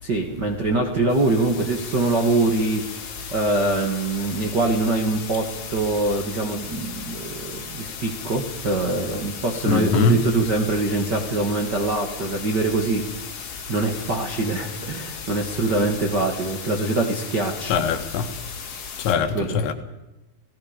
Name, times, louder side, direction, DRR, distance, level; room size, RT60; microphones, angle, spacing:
voice 1, 0.0-2.8 3.3-13.1 13.7-17.8 19.3-19.6, right 2 dB, 60° right, 1.0 m, -24 dB
sound 1, 1.1-19.2, left 6 dB, 65° left, 4.8 m, -37 dB
voice 2, 9.7-10.2 17.7-18.3 19.0-19.7, left 6 dB, 90° left, 3.9 m, -21 dB
29.5 x 18.0 x 5.2 m
omnidirectional pair, 5.1 m